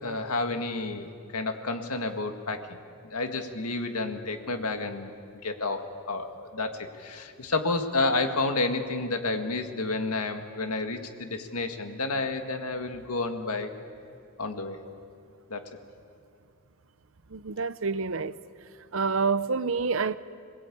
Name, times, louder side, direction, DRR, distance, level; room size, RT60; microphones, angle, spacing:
voice 1, 0.0-2.7 3.1-5.1 5.4-13.7 14.4-14.8 15.5-15.6, left 3 dB, 85° left, 2.0 m, -30 dB
voice 2, 17.3-18.4 18.9-20.2, right 4 dB, 60° right, 0.7 m, -27 dB
27.0 x 20.0 x 8.7 m
head